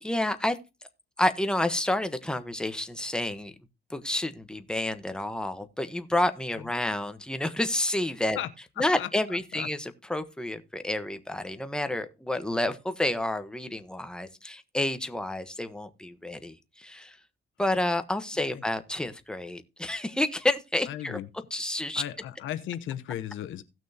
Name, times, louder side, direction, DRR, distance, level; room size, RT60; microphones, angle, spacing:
voice 1, 0.0-0.6 1.2-3.5 3.9-8.4 8.8-17.2 17.6-21.2 21.5-22.0, left 1 dB, 5° left, 1.2 m, -29 dB
voice 2, 8.8-9.7 18.5-18.6 20.9-21.3 21.9-23.6, left 11 dB, 80° left, 1.0 m, -36 dB
17.0 x 6.2 x 2.9 m
cardioid pair, 90°, 20 cm